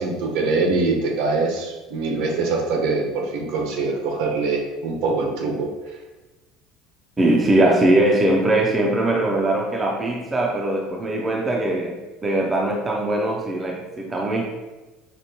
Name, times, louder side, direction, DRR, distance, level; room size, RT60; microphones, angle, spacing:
voice 1, 0.0-5.7, right 3 dB, 65° right, 2 dB, 0.7 m, -23 dB
voice 2, 7.2-12.0 12.2-14.4, right 1 dB, 15° right, 0 dB, 0.4 m, -21 dB
5.1 x 2.1 x 2.9 m, 1.1 s
cardioid pair, 160°, 0 cm